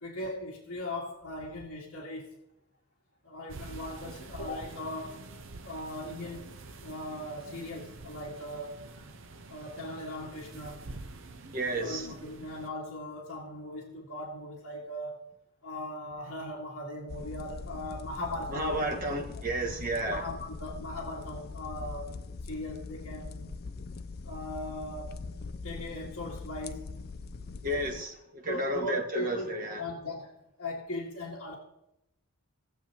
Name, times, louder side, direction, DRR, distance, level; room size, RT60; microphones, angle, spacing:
voice 1, 0.0-2.4 3.2-5.2 5.6-6.4 6.8-8.9 9.5-10.9 11.7-15.2 15.6-18.9 20.1-22.1 22.4-23.5 24.2-25.2 25.6-26.9 28.5-29.5 29.8-31.6, left 1 dB, 60° left, 2.0 m, -39 dB
sound 1, 3.5-12.7, right 2 dB, 60° right, 0.8 m, -47 dB
voice 2, 11.5-12.1 18.5-20.2 27.6-29.8, right 1 dB, 40° right, 1.5 m, -32 dB
sound 2, 17.1-28.0, left 4 dB, 45° left, 0.4 m, -42 dB
19.5 x 7.1 x 2.9 m
head